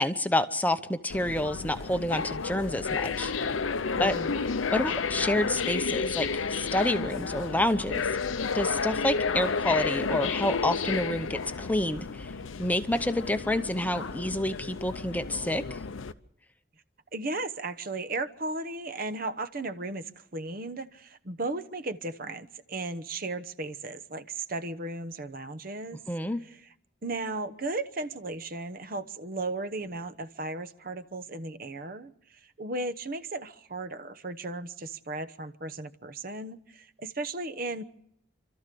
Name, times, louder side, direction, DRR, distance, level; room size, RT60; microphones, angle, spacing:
voice 1, 0.0-3.3 4.0-4.2 4.7-8.1 8.5-12.3 12.6-15.8 26.1-26.4, left 1 dB, 10° left, 10 dB, 0.7 m, -28 dB
sound 1, 1.1-16.1, left 5 dB, 90° left, 0.7 m, -31 dB
voice 2, 4.0-4.4 17.1-26.0 27.0-32.1 32.4-37.8, right 2 dB, 45° right, 12 dB, 1.0 m, -35 dB
28.5 x 13.5 x 6.8 m, 0.74 s
head